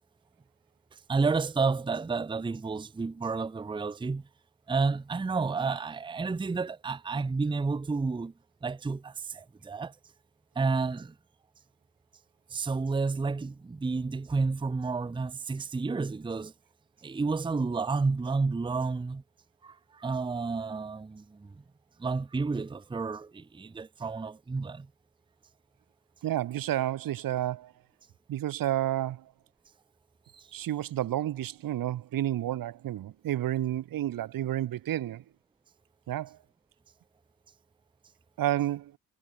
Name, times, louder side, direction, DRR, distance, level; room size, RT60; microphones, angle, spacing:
voice 1, 1.1-4.2 4.7-8.3 8.6-9.9 10.6-11.1 12.5-16.5 17.0-19.2 19.6-21.5 22.0-24.9 30.3-30.5, right 4 dB, 15° right, 0.6 m, -30 dB
voice 2, 26.2-27.7 28.3-29.2 30.5-35.2 36.1-36.4 38.4-39.0, right 13 dB, 75° right, 1.1 m, -30 dB
cardioid pair, 80°, 35 cm